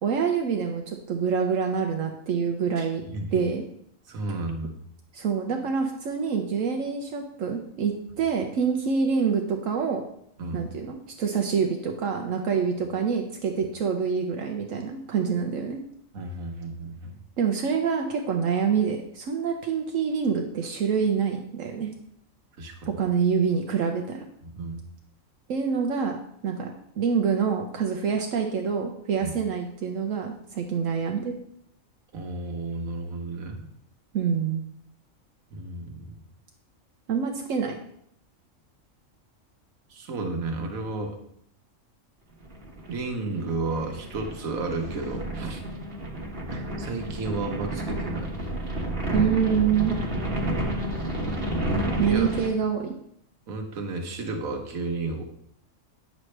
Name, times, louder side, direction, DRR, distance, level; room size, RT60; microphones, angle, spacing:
voice 1, 0.0-3.0 3.3-3.6 5.1-10.0 10.5-15.8 17.4-21.9 22.8-24.2 25.5-26.2 26.4-31.3 34.1-34.7 37.1-37.8 49.1-49.9 52.0-52.9, right 6 dB, 75° right, 3 dB, 1.1 m, -26 dB
voice 2, 2.8-3.4 4.1-4.7 10.4-10.6 16.1-17.1 22.6-23.0 24.4-24.8 29.2-29.3 32.1-33.6 35.5-36.1 39.9-41.2 42.9-45.6 46.5-48.4 51.6-51.7 52.0-52.3 53.5-55.2, right 3 dB, 90° right, 3 dB, 1.5 m, -33 dB
sound 1, 42.4-52.5, right 1 dB, 45° right, 1.5 m, -30 dB
8.9 x 6.2 x 3.3 m, 0.71 s
omnidirectional pair, 1.4 m